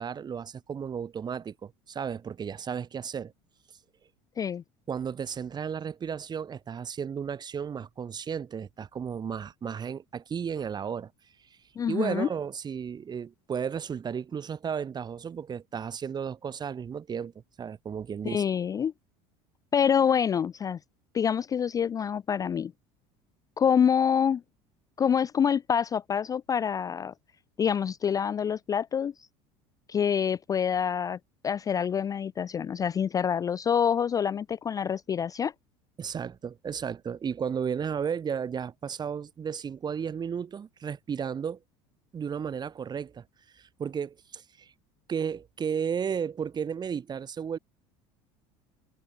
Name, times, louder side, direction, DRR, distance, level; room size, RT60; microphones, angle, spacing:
voice 1, 0.0-3.3 4.9-11.1 11.4-11.6 11.9-18.4 36.0-41.6 42.1-43.2 43.5-44.7 45.1-47.6, right 7 dB, 30° right, 2.3 m, -34 dB
voice 2, 11.8-12.3 18.2-18.9 19.7-20.8 21.1-22.7 23.6-24.4 25.0-27.1 27.6-29.1 29.9-31.2 31.4-35.5, left 7 dB, 25° left, 0.4 m, -26 dB
supercardioid pair, 100°, 14 cm